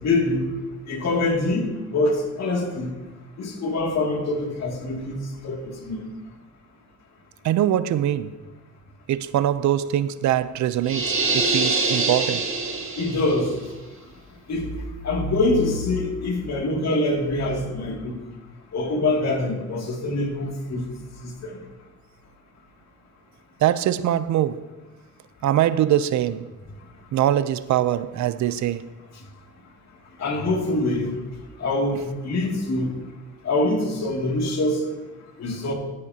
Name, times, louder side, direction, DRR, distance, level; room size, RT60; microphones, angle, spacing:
voice 1, 0.0-0.5 0.9-2.9 3.4-5.2 5.4-6.0 13.0-13.5 14.5-14.7 15.0-18.2 18.7-20.8 21.4-21.6 30.2-31.1 31.6-32.9 33.4-34.8 35.4-35.7, left 2 dB, 60° left, 2.5 m, -24 dB
voice 2, 7.4-8.4 9.1-12.5 23.6-24.7 25.4-26.5 27.1-28.8, right 11 dB, 70° right, 0.6 m, -23 dB
sound 1, 10.8-13.4, right 3 dB, 45° right, 1.9 m, -24 dB
14.5 x 9.7 x 2.8 m
cardioid pair, 90°, 30 cm